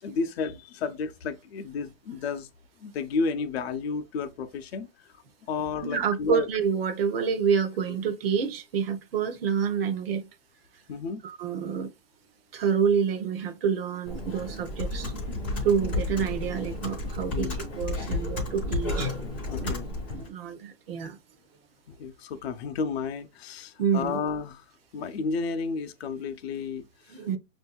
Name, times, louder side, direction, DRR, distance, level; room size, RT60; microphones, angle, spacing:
voice 1, 0.0-2.5 2.8-4.9 5.5-6.5 10.9-11.2 16.2-16.3 17.3-17.6 19.5-19.9 21.9-24.6 24.9-27.2, left 5 dB, 55° left, 0.6 m, -32 dB
voice 2, 5.8-10.3 11.2-11.9 12.5-15.1 15.6-19.1 19.6-19.8 20.1-21.2 23.8-24.2 27.1-27.4, right 7 dB, 50° right, 0.7 m, -28 dB
Computer keyboard, 14.1-20.3, left 2 dB, 10° left, 0.4 m, -32 dB
6.0 x 2.6 x 2.2 m
supercardioid pair, 180°, 38 cm